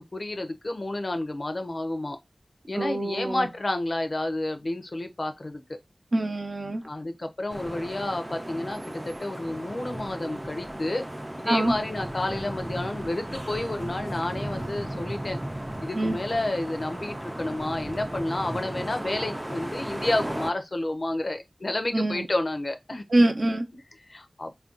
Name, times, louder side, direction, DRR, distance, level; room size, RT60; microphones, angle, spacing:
voice 1, 0.0-2.2 2.7-5.6 6.8-11.1 11.4-15.4 15.8-23.0 24.1-24.5, left 2 dB, 60° left, 0.5 m, -30 dB
voice 2, 2.7-3.5 6.1-6.8 11.5-11.7 15.9-16.2 21.9-22.3 23.1-23.6, right 1 dB, 65° right, 0.6 m, -24 dB
sound 1, 7.5-20.5, right 1 dB, 20° right, 0.4 m, -35 dB
2.5 x 2.2 x 3.7 m
wide cardioid pair, 60°, 0 cm